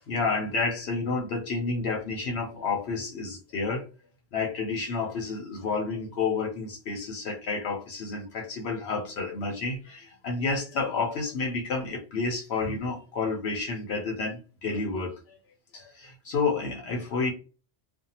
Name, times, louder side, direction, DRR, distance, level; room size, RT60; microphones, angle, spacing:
voice 1, 0.1-3.9 4.3-15.4 15.7-17.3, left 4 dB, 75° left, 0.9 m, -30 dB
2.5 x 2.2 x 2.7 m
omnidirectional pair, 1.1 m